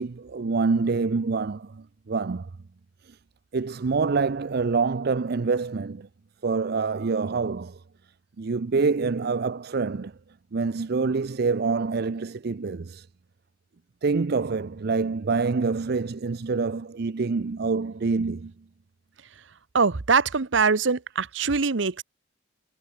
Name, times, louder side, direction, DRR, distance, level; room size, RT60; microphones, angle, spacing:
voice 1, 0.0-2.5 3.5-6.1 6.4-7.8 8.4-10.1 10.5-13.0 14.0-18.5, right 4 dB, 55° right, 0.5 m, -26 dB
voice 2, 19.7-22.0, right 5 dB, 70° right, 0.9 m, -23 dB
head